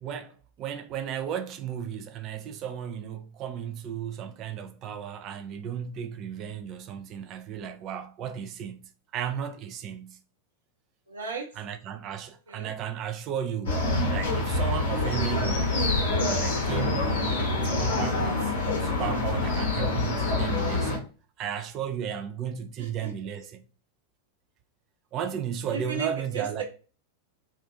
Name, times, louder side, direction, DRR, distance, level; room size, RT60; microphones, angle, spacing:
voice 1, 0.0-10.2 11.5-15.8 16.2-21.1 21.4-23.6 25.1-26.6, right 8 dB, 35° right, 0.4 m, -35 dB
voice 2, 11.1-11.5 12.5-12.7 22.8-23.1 25.7-26.1 26.3-26.6, right 6 dB, 70° right, 0.7 m, -34 dB
sound 1, 13.7-21.0, left 2 dB, 55° left, 0.8 m, -26 dB
2.5 x 2.2 x 2.7 m
figure-of-eight pair, 90°, 0 cm